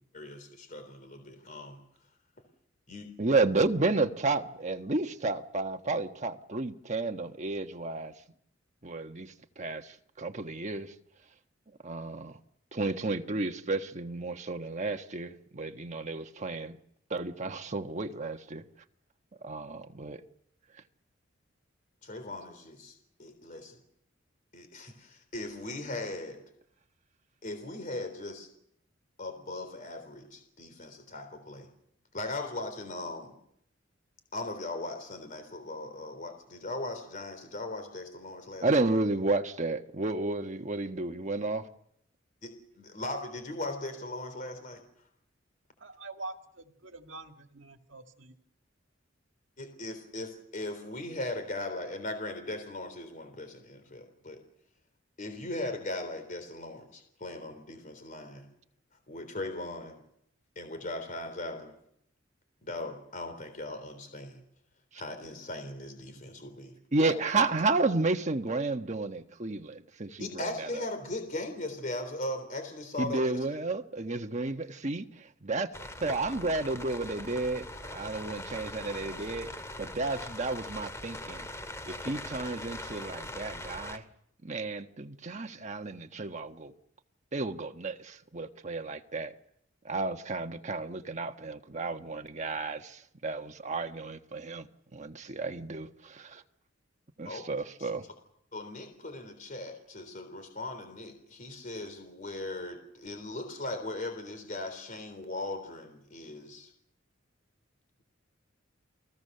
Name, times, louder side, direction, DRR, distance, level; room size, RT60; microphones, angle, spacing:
voice 1, 0.1-1.8 2.9-3.1 22.0-23.8 24.5-26.4 27.4-28.5 29.2-31.7 32.1-33.3 34.3-38.8 42.4-44.8 49.6-54.4 55.2-58.5 59.1-60.0 60.6-61.7 62.6-64.4 65.0-67.5 70.2-73.4 97.3-97.4 97.8-97.9 98.5-106.7, left 2 dB, 45° left, 3.7 m, -39 dB
voice 2, 3.2-8.1 8.8-10.9 11.8-12.4 12.7-16.8 17.1-18.6 19.4-20.2 38.6-41.7 66.9-70.8 73.0-75.7 76.0-79.5 79.8-81.5 81.9-84.0 84.4-86.7 87.3-89.3 89.8-94.7 94.9-96.4 97.2-98.1, right 3 dB, 35° right, 1.3 m, -32 dB
voice 3, 45.8-48.3, right 2 dB, 70° right, 2.1 m, -45 dB
sound 1, 75.7-84.0, left 1 dB, 15° left, 2.0 m, -41 dB
29.5 x 20.0 x 6.8 m
head